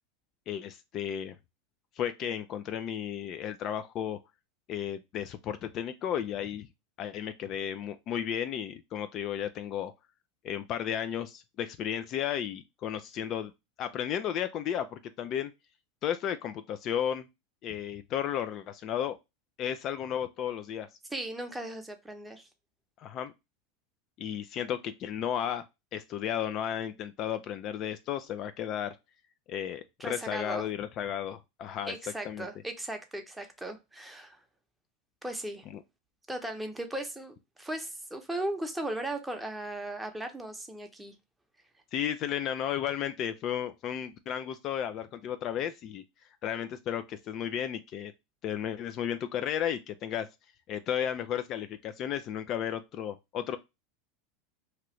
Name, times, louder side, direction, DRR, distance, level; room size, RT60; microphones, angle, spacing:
voice 1, 0.5-1.4 2.0-4.2 4.7-6.7 7.0-9.9 10.4-13.5 13.8-15.5 16.0-17.2 17.6-19.2 19.6-20.9 23.0-23.3 24.2-25.6 25.9-29.0 29.5-32.0 32.2-32.5 41.9-46.0 46.4-48.1 48.4-50.3 50.7-53.6, left 9 dB, 45° left, 0.3 m, -33 dB
voice 2, 21.1-22.5 30.0-30.7 31.8-34.4 35.2-35.6 36.3-41.1, right 1 dB, 5° right, 0.8 m, -37 dB
2.9 x 2.5 x 3.0 m
hypercardioid pair, 100°, 0 cm